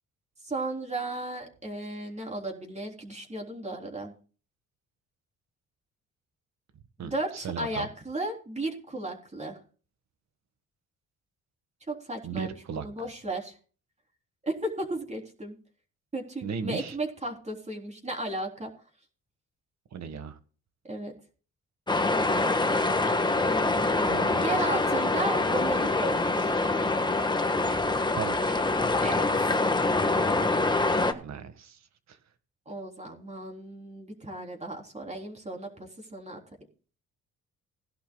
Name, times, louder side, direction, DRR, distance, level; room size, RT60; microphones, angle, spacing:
voice 1, 0.4-4.1 7.0-9.6 11.9-13.5 14.4-15.6 16.1-18.7 20.9-21.1 23.4-24.1 24.4-26.5 29.0-29.3 32.7-36.4, right 2 dB, 20° right, 2 dB, 3.6 m, -35 dB
voice 2, 7.0-7.9 12.2-12.9 16.4-17.0 19.9-20.4 24.1-24.5 28.1-28.6 31.2-32.2, right 7 dB, 60° right, 11 dB, 1.7 m, -37 dB
sound 1, 21.9-31.1, left 2 dB, 15° left, 1.5 m, -25 dB
18.0 x 11.5 x 2.3 m, 0.38 s
cardioid pair, 90°, 30 cm